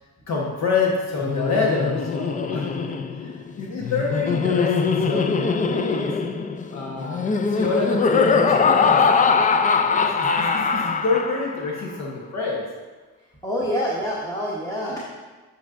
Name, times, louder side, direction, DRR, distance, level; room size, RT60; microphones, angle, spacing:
voice 1, 0.3-6.2 6.7-12.6, left 4 dB, 60° left, -2 dB, 1.1 m, -27 dB
Laughter, 1.2-11.7, left 5 dB, 25° left, 0.4 m, -22 dB
voice 2, 13.4-15.0, equal, 10° left, -5 dB, 1.0 m, -26 dB
8.2 x 5.2 x 2.5 m, 1.3 s
cardioid pair, 90°, 30 cm